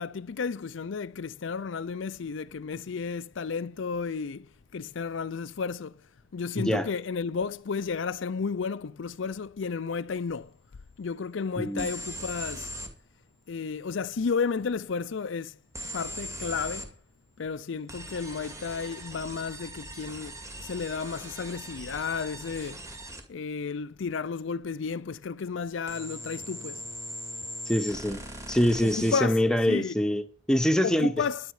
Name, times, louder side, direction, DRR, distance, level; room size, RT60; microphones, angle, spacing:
voice 1, 0.0-4.5 4.7-5.9 6.3-10.5 11.0-12.7 13.5-15.6 15.9-16.9 17.4-22.8 23.3-26.8 28.8-29.4 29.7-29.9 30.8-31.4, left 5 dB, 70° left, 0.5 m, -32 dB
voice 2, 6.6-6.9 11.6-11.9 27.7-28.2 28.5-31.1, equal, 5° left, 1.0 m, -25 dB
sound 1, 11.8-12.9 15.8-16.9 17.9-23.3 25.9-29.2, right 1 dB, 15° right, 2.1 m, -40 dB
14.0 x 10.5 x 4.9 m
head